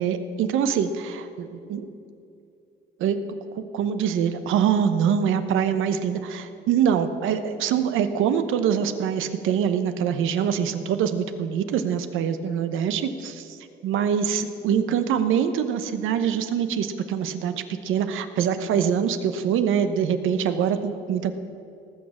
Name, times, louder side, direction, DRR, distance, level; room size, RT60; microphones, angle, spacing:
voice 1, 0.0-1.9 3.0-3.2 3.5-21.3, right 8 dB, 90° right, 10 dB, 0.9 m, -24 dB
18.5 x 6.6 x 7.0 m, 2.6 s
cardioid pair, 90°, 20 cm